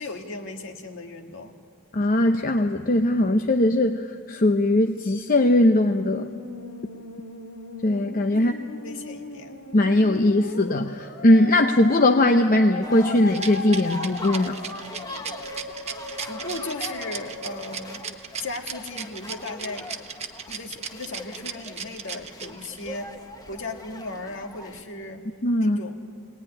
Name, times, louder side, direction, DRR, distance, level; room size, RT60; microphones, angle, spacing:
voice 1, 0.0-1.5 8.3-8.5 8.8-9.5 16.2-18.0 18.4-19.9 20.5-23.1 23.5-25.2 25.6-26.0, left 2 dB, 55° left, 3 dB, 1.9 m, -36 dB
voice 2, 1.9-6.3 7.8-8.5 9.7-14.6 25.4-25.8, left 1 dB, 40° left, 5 dB, 0.7 m, -20 dB
Musical instrument, 5.4-18.7, left 2 dB, 90° left, 2.3 m, -39 dB
sound 1, 12.8-24.8, left 1 dB, 15° left, 1.0 m, -41 dB
Rattle, 13.3-22.9, right 7 dB, 30° right, 1.0 m, -35 dB
23.0 x 19.0 x 9.8 m, 2.2 s
head